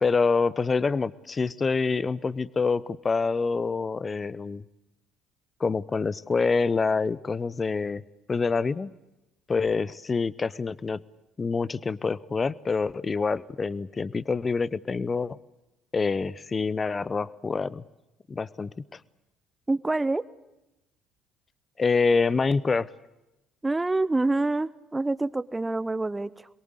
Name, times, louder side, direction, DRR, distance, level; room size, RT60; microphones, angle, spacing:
voice 1, 0.0-4.6 5.6-8.0 8.3-8.9 9.5-11.0 11.4-15.4 15.9-17.8 18.3-19.0 21.8-22.9, left 4 dB, 30° left, 20 dB, 0.8 m, -26 dB
voice 2, 19.7-20.2 23.6-26.5, right 2 dB, 15° right, 16 dB, 1.0 m, -26 dB
25.5 x 22.5 x 8.1 m, 0.97 s
figure-of-eight pair, 55°, 0 cm